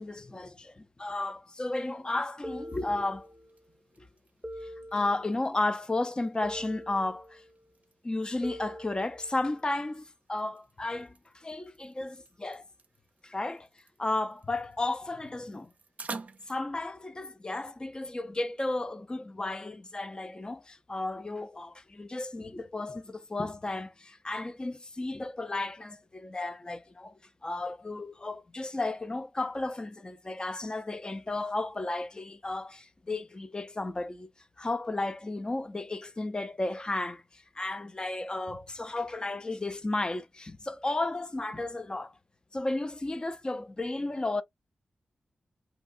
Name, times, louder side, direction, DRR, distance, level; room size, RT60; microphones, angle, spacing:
voice 1, 0.0-3.3 4.0-4.1 4.6-7.4 8.0-12.6 13.2-13.7 14.0-15.7 16.5-27.1 27.4-34.3 34.6-42.1 42.5-44.4, left 2 dB, 30° left, 0.5 m, -33 dB
sound 1, 1.9-16.6, right 4 dB, 55° right, 0.5 m, -51 dB
sound 2, 2.4-3.6 4.4-5.6 6.4-7.6 8.4-9.6, equal, 20° right, 0.8 m, -44 dB
2.8 x 2.3 x 2.4 m
cardioid pair, 55°, 3 cm